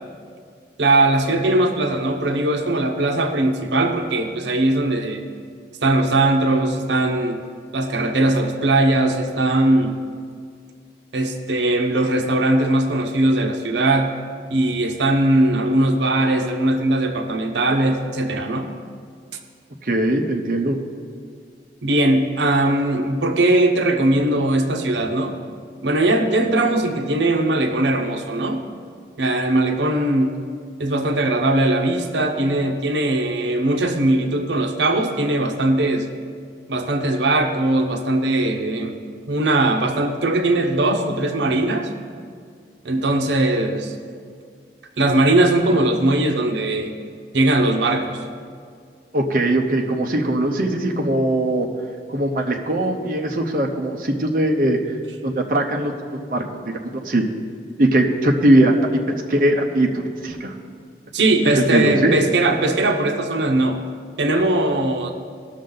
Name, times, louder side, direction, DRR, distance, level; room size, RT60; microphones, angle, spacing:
voice 1, 0.8-5.2 5.8-7.4 7.7-9.9 11.1-14.1 14.5-18.7 21.8-25.4 25.8-28.7 29.2-30.4 30.8-36.1 36.7-38.9 39.3-41.9 42.8-43.9 45.0-46.9 47.3-48.2 61.1-63.8 64.2-65.1, right 2 dB, 85° right, 5 dB, 0.8 m, -20 dB
voice 2, 19.8-20.8 49.1-51.7 52.1-54.8 55.2-55.9 56.3-56.4 57.0-57.2 57.8-58.7 59.3-60.5 61.6-62.2, right 1 dB, 50° right, 2 dB, 0.8 m, -20 dB
17.5 x 6.5 x 3.9 m, 2.1 s
head